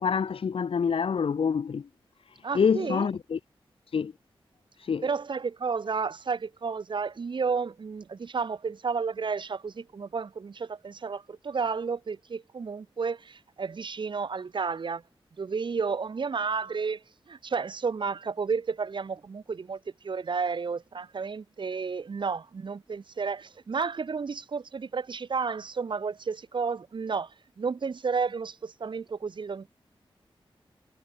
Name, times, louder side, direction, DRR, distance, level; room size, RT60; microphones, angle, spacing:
voice 1, 0.0-1.9 2.3-3.4 3.9-4.1 4.8-5.1, left 6 dB, 75° left, 3.9 m, -27 dB
voice 2, 2.4-3.1 5.0-15.0 15.4-29.7, right 5 dB, 60° right, 6.5 m, -32 dB
wide cardioid pair, 140°, 9 cm